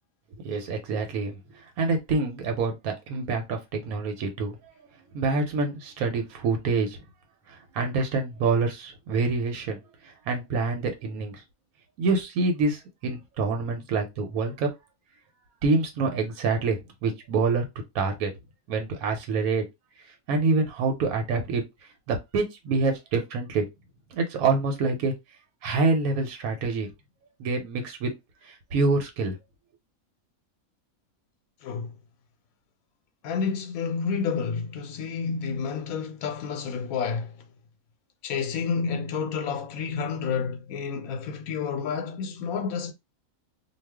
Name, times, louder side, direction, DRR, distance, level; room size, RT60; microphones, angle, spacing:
voice 1, 0.4-1.4 1.8-4.6 5.1-7.0 7.5-9.8 10.0-11.4 12.0-14.7 15.6-17.6 17.9-18.3 18.7-19.6 20.3-21.6 22.1-23.6 24.1-25.1 25.6-26.9 27.4-28.1 28.4-29.4, right 3 dB, 90° right, 1.1 m, -26 dB
voice 2, 31.6-32.0 33.2-37.4 38.2-42.9, left 5 dB, 85° left, 1.1 m, -30 dB
2.4 x 2.3 x 3.4 m
omnidirectional pair, 1.5 m